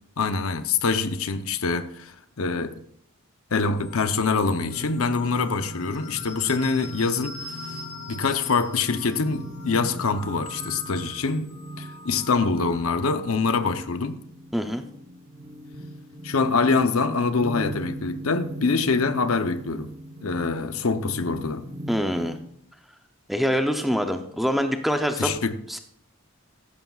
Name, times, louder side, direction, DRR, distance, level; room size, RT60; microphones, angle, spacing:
voice 1, 0.2-2.8 3.5-7.6 8.1-11.5 11.8-14.2 16.2-19.9 20.2-21.6 25.2-25.5, left 4 dB, 75° left, 0.8 m, -25 dB
sound 1, 3.6-13.4, left 3 dB, 50° left, 4.0 m, -43 dB
sound 2, 4.5-22.5, equal, 30° right, 1.1 m, -40 dB
voice 2, 14.5-14.8 21.9-22.4 23.3-25.4 25.7-25.8, equal, ahead, 0.6 m, -25 dB
14.5 x 11.5 x 2.4 m
head